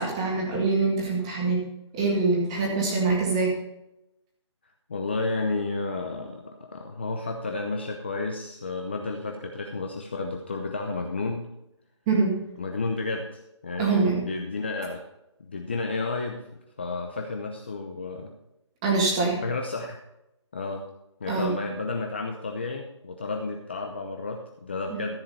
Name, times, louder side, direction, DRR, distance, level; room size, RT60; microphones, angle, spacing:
voice 1, 0.0-1.6 1.9-3.5 12.1-12.4 13.8-14.3 18.8-19.4 21.3-21.6 24.9-25.0, right 3 dB, 10° right, -1 dB, 1.8 m, -24 dB
voice 2, 4.9-11.5 12.6-15.0 15.4-16.4 16.8-18.3 19.4-20.0 20.5-20.8 21.2-25.1, left 3 dB, 25° left, 2 dB, 0.8 m, -31 dB
14.0 x 7.7 x 4.2 m, 0.88 s
hypercardioid pair, 175°, 15 cm